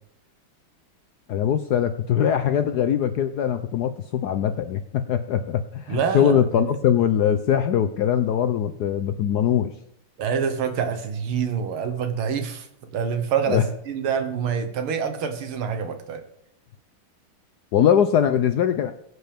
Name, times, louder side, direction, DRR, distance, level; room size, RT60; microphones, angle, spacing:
voice 1, 1.3-9.7 13.5-13.6 17.7-18.9, left 9 dB, 75° left, 9 dB, 0.9 m, -22 dB
voice 2, 5.9-6.7 10.2-16.2, right 7 dB, 85° right, 7 dB, 2.1 m, -26 dB
21.5 x 8.1 x 3.5 m, 0.75 s
omnidirectional pair, 2.3 m